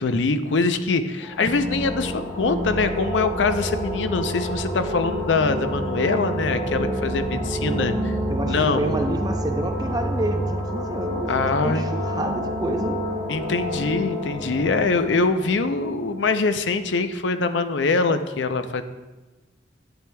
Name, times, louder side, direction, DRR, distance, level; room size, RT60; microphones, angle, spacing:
voice 1, 0.0-8.1 8.5-8.8 11.3-11.9 13.3-18.8, left 3 dB, 85° left, 10 dB, 0.6 m, -23 dB
sound 1, 1.2-16.7, equal, 10° left, 2.1 m, -28 dB
voice 2, 8.3-13.0, right 1 dB, 20° right, 4 dB, 0.7 m, -28 dB
11.5 x 8.7 x 2.3 m, 1.1 s
head